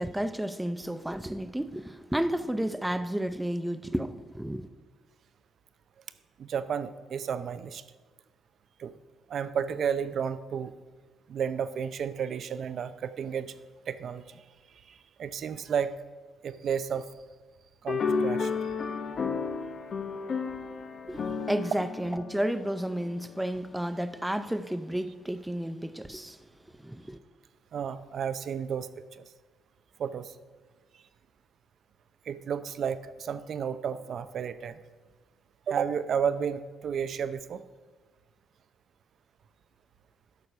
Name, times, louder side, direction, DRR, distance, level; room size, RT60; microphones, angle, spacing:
voice 1, 0.0-4.7 21.1-21.2 21.5-26.4 26.8-27.2, right 1 dB, 5° right, 0.5 m, -32 dB
voice 2, 6.4-7.8 8.8-8.9 9.3-10.7 11.3-13.6 13.9-14.4 14.9-15.9 16.4-17.1 17.8-18.5 27.7-29.2 30.0-30.3 32.3-34.8 35.7-37.6, right 7 dB, 55° right, 0.6 m, -32 dB
sound 1, 17.9-23.4, left 5 dB, 45° left, 0.8 m, -32 dB
12.0 x 6.5 x 5.5 m
cardioid pair, 115°, 0 cm